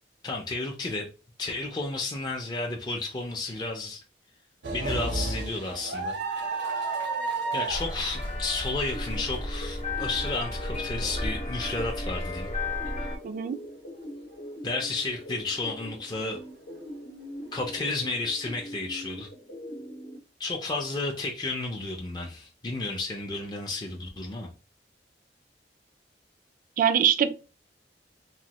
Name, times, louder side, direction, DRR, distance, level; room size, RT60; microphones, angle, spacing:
voice 1, 0.2-1.1 1.4-4.0 4.7-6.1 7.5-12.5 14.6-16.4 17.5-19.3 20.4-24.5, left 3 dB, 25° left, 0.4 m, -32 dB
sound 1, 4.6-10.8 11.3-11.4 12.5-12.7, right 3 dB, 75° right, 0.7 m, -32 dB
sound 2, 7.7-13.2, left 2 dB, 40° left, 0.8 m, -33 dB
sound 3, 8.9-20.2, left 1 dB, 75° left, 0.7 m, -42 dB
voice 2, 13.2-13.6 26.8-27.4, right 8 dB, 50° right, 0.3 m, -23 dB
3.0 x 2.2 x 2.8 m
head